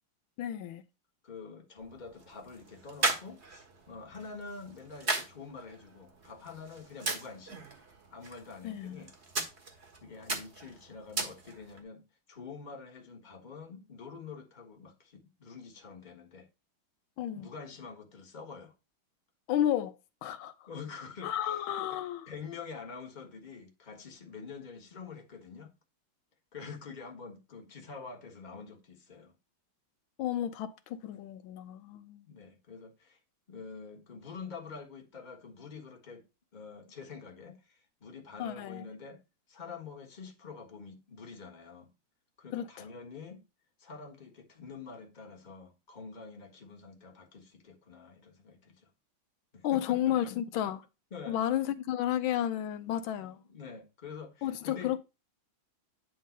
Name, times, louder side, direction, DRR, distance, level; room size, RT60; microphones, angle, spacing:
voice 1, 0.4-0.8 8.6-9.0 17.2-17.5 19.5-20.0 20.2-20.7 21.2-22.3 30.2-32.2 38.4-38.9 42.5-42.7 49.6-50.8 51.3-53.4 54.4-55.0, left 11 dB, 85° left, 1.4 m, -32 dB
voice 2, 1.2-7.6 8.1-9.1 10.0-12.0 12.3-16.5 17.3-18.7 20.7-22.0 22.3-25.7 26.5-29.4 32.2-33.2 33.5-39.2 39.5-41.9 42.4-43.4 43.8-48.9 49.5-50.3 51.1-51.4 53.2-54.9, left 5 dB, 25° left, 1.4 m, -47 dB
sound 1, 1.8-11.8, right 3 dB, 35° right, 1.6 m, -38 dB
9.5 x 3.8 x 5.1 m
omnidirectional pair, 2.2 m